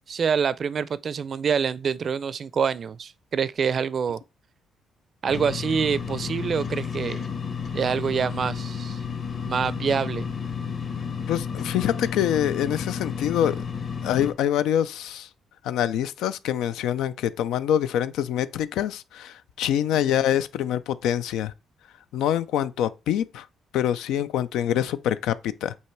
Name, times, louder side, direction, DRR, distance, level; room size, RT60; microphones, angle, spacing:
voice 1, 0.1-4.2 5.2-7.2 7.7-9.0 9.4-10.3, right 6 dB, 50° right, 0.4 m, -26 dB
sound 1, 5.3-14.3, left 6 dB, 55° left, 1.9 m, -32 dB
voice 2, 11.3-13.6 14.0-15.3 15.6-21.5 22.1-23.5 23.7-25.8, left 10 dB, 85° left, 0.4 m, -25 dB
8.3 x 2.9 x 4.5 m
cardioid pair, 90°, 0 cm